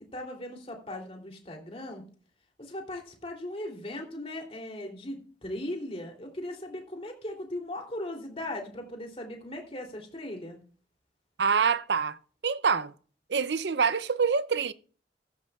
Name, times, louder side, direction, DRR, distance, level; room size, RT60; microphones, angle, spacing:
voice 1, 0.1-2.0 2.6-10.6, left 1 dB, 35° left, 3.1 m, -38 dB
voice 2, 11.4-12.2 12.4-12.9 13.3-14.7, right 5 dB, 75° right, 0.6 m, -25 dB
15.0 x 13.0 x 2.4 m
head